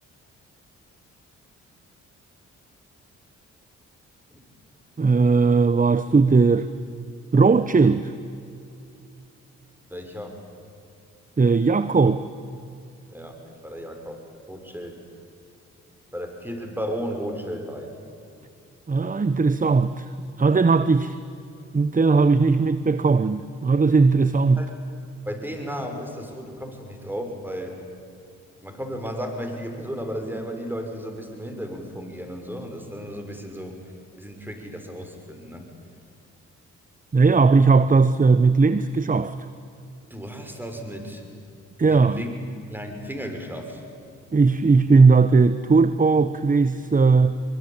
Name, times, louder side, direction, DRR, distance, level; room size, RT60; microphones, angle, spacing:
voice 1, 5.0-6.7 7.3-8.1 11.4-12.2 18.9-20.1 20.4-21.2 21.7-24.7 37.1-39.3 41.8-42.2 44.3-47.4, right 4 dB, 25° right, 0.9 m, -18 dB
voice 2, 9.9-10.4 13.1-14.2 14.5-15.0 16.1-17.9 24.6-24.7 25.2-27.8 28.6-33.8 34.2-35.7 40.1-41.2 41.8-42.3 42.7-43.8, equal, 5° right, 6.1 m, -34 dB
23.5 x 22.5 x 9.1 m
hypercardioid pair, 50°, 34 cm